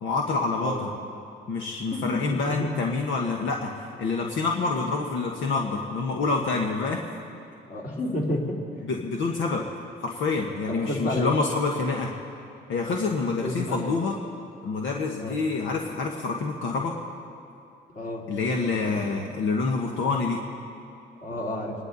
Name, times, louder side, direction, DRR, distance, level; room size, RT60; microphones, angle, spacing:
voice 1, 0.0-0.9 1.5-3.7 4.0-7.0 8.1-8.2 8.8-9.6 10.0-12.1 12.7-14.1 14.6-16.9 18.3-20.4, left 4 dB, 75° left, 0 dB, 1.4 m, -27 dB
voice 2, 1.9-2.7 7.7-8.5 10.7-11.3 13.4-13.9 15.2-15.4 17.9-18.2 18.6-19.2 21.2-21.7, left 1 dB, 45° left, -2 dB, 3.5 m, -31 dB
28.0 x 11.5 x 4.1 m, 2.6 s
cardioid pair, 90°, 20 cm